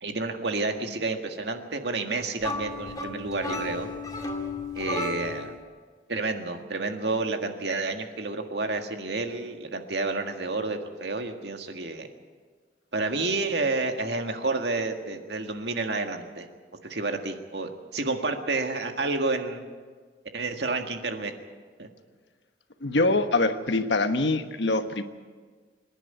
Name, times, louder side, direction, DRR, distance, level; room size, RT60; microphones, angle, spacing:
voice 1, 0.0-3.9 4.8-5.5 6.1-12.1 12.9-16.5 16.9-19.6 20.3-21.3 21.8-21.9, right 3 dB, 70° right, 5 dB, 1.8 m, -30 dB
sound 1, 2.4-5.6, left 2 dB, 20° left, 1.8 m, -33 dB
voice 2, 22.8-25.0, left 2 dB, 85° left, 8 dB, 1.3 m, -24 dB
26.0 x 11.0 x 9.4 m, 1.5 s
head